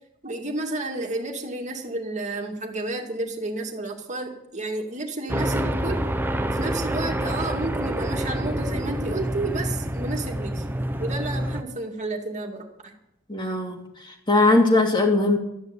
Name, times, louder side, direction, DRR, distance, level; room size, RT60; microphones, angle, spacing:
voice 1, 0.2-6.0 6.5-10.6 11.0-12.9, right 2 dB, 35° right, 2 dB, 2.3 m, -31 dB
sound 1, 5.3-11.6, right 1 dB, 10° right, 0.8 m, -27 dB
voice 2, 13.3-13.8 14.0-15.4, left 2 dB, 20° left, 2 dB, 2.5 m, -20 dB
13.5 x 9.8 x 7.8 m, 0.83 s
head